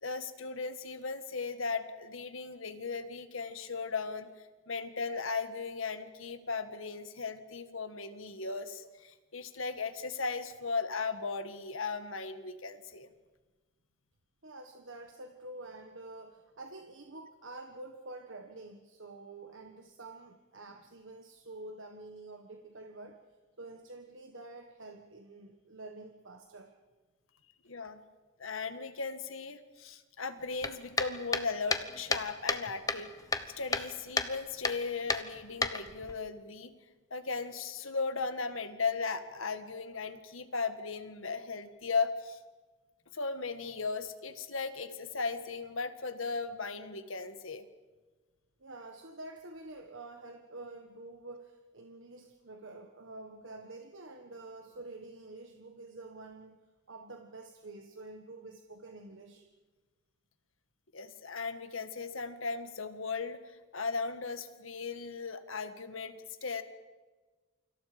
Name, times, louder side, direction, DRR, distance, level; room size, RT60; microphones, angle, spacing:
voice 1, 0.0-13.1 27.6-28.0 28.4-33.1 33.6-36.7 37.1-42.4 43.1-47.7 60.9-63.4 63.7-66.6, left 4 dB, 70° left, 9 dB, 1.7 m, -37 dB
voice 2, 14.4-23.2 23.6-26.8 48.6-56.6 56.9-59.5, right 2 dB, 60° right, 4 dB, 1.5 m, -48 dB
sound 1, 30.6-32.6 32.9-33.9 34.2-34.3 34.6-34.8 35.1-36.1, left 3 dB, 15° left, 1.1 m, -31 dB
29.0 x 26.0 x 5.2 m, 1.3 s
head